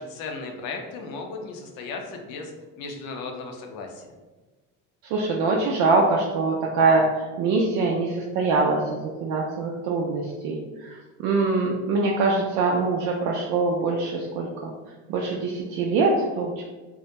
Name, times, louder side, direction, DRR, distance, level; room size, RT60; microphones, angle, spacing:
voice 1, 0.0-4.1, left 3 dB, 70° left, 3 dB, 0.6 m, -36 dB
voice 2, 5.1-7.0 7.4-14.7 15.1-16.6, right 3 dB, 65° right, -2 dB, 0.5 m, -23 dB
2.2 x 2.1 x 2.8 m, 1.3 s
supercardioid pair, 100°, 37 cm